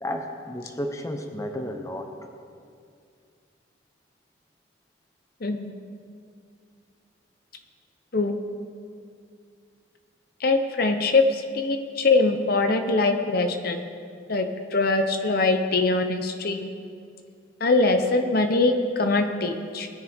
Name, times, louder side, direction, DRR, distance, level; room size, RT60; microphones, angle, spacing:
voice 1, 0.0-2.1, left 1 dB, 15° left, 4 dB, 0.8 m, -32 dB
voice 2, 5.4-5.8 8.1-8.3 10.4-13.8 14.3-14.5 14.7-16.7 17.6-19.9, left 3 dB, 50° left, 6 dB, 0.7 m, -22 dB
19.5 x 10.0 x 3.5 m, 2.3 s
head